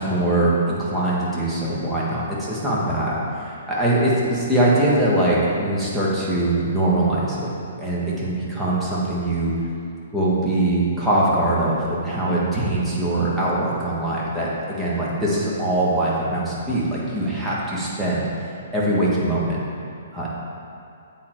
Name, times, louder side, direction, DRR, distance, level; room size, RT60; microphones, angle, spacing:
voice 1, 0.0-9.5 10.1-19.6 20.1-20.3, right 1 dB, 5° right, -7 dB, 1.5 m, -22 dB
8.6 x 3.9 x 4.6 m, 2.6 s
hypercardioid pair, 140°, 0 cm